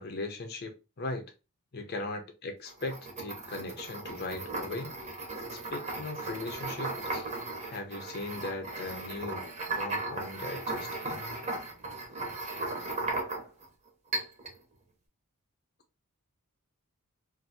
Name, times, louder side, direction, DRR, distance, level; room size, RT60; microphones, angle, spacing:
voice 1, 0.0-1.3 1.7-4.9 5.5-7.3 7.7-11.4, left 2 dB, 50° left, 0.6 m, -39 dB
sound 1, 2.7-13.7 14.1-14.6, right 2 dB, 30° right, 0.8 m, -36 dB
2.6 x 2.5 x 2.7 m
head